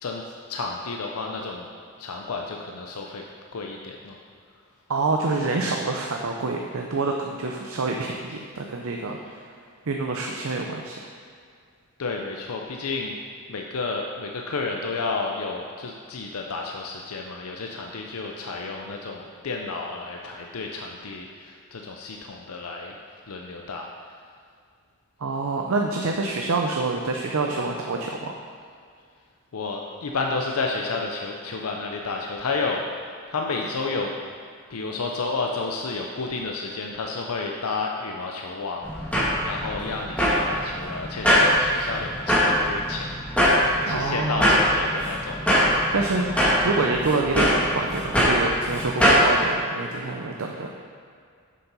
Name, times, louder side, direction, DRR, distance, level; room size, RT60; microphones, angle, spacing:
voice 1, 0.0-1.7 2.0-3.2 3.5-4.2 12.0-13.2 13.5-23.0 23.3-24.1 29.5-34.1 34.7-45.8, left 3 dB, 90° left, 1 dB, 0.6 m, -31 dB
voice 2, 4.9-9.4 9.9-11.0 25.2-28.3 43.9-44.6 45.9-50.7, right 3 dB, 70° right, 1 dB, 0.6 m, -27 dB
sound 1, 38.8-49.3, equal, 5° left, 1.8 m, -22 dB
7.2 x 7.0 x 5.4 m, 2.2 s
head